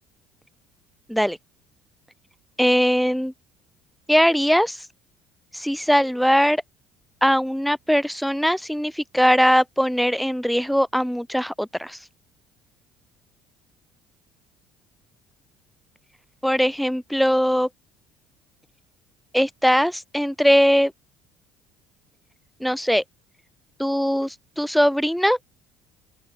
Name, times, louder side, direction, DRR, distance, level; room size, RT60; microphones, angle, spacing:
voice 1, 2.6-3.3 4.1-4.8 5.5-6.6 7.2-12.0 16.4-17.7 19.3-20.9 22.6-23.0 23.8-25.4, equal, ahead, 0.5 m, -20 dB
open air
hypercardioid pair, 60°, 2 cm